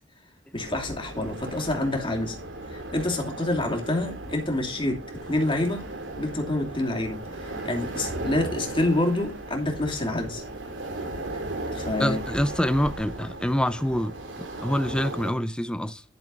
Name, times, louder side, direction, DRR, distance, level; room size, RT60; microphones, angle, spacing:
voice 1, 0.5-2.4 2.7-5.0 5.3-5.9 6.2-10.4 11.7-12.2, left 1 dB, 25° left, 2.7 m, -27 dB
sound 1, 0.6-15.3, right 2 dB, 85° right, 3.3 m, -36 dB
voice 2, 12.0-16.0, equal, 5° left, 0.6 m, -26 dB
12.0 x 6.9 x 4.0 m
head